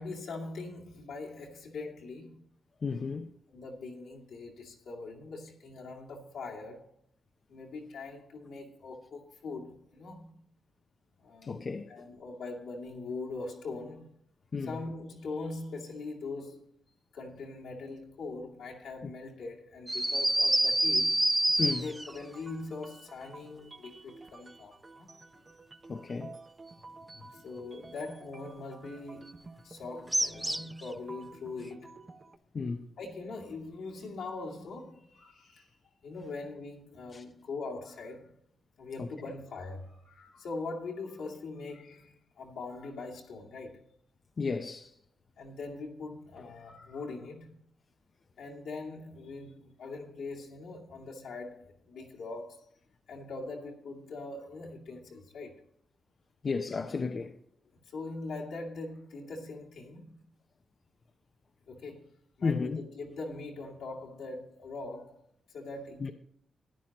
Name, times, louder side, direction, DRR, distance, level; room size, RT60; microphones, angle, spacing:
voice 1, 0.0-2.5 3.5-6.9 7.5-10.4 11.2-11.6 11.9-14.1 14.6-16.7 17.1-21.2 21.7-25.1 27.3-32.0 33.0-35.8 36.0-38.3 38.8-43.9 45.4-47.6 48.4-52.7 53.1-55.6 57.8-60.1 61.7-65.2 65.5-66.1, left 3 dB, 85° left, 2.3 m, -42 dB
voice 2, 2.8-3.3 11.4-11.9 14.5-14.7 21.6-21.9 25.9-26.4 32.5-32.8 37.1-37.2 39.0-39.1 44.4-44.9 56.4-57.3 62.4-62.8 66.0-66.1, left 4 dB, 50° left, 0.6 m, -33 dB
sound 1, 19.9-22.2 30.1-30.8, right 1 dB, 10° right, 0.4 m, -26 dB
sound 2, 21.5-32.4, right 3 dB, 35° right, 0.8 m, -52 dB
13.5 x 10.0 x 3.0 m
cardioid pair, 65°, 0 cm